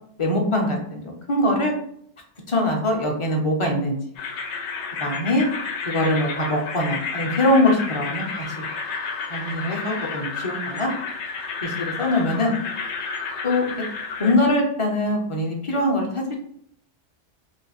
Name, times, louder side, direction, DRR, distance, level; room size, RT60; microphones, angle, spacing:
voice 1, 0.2-1.7 2.5-4.0 5.0-5.5 5.9-8.6 9.3-10.9 11.6-12.5 13.4-13.6 14.2-16.4, left 1 dB, 35° left, 0 dB, 0.6 m, -22 dB
sound 1, 4.2-14.3, left 5 dB, 80° left, 0.9 m, -31 dB
3.1 x 2.0 x 4.0 m, 0.67 s
omnidirectional pair, 1.2 m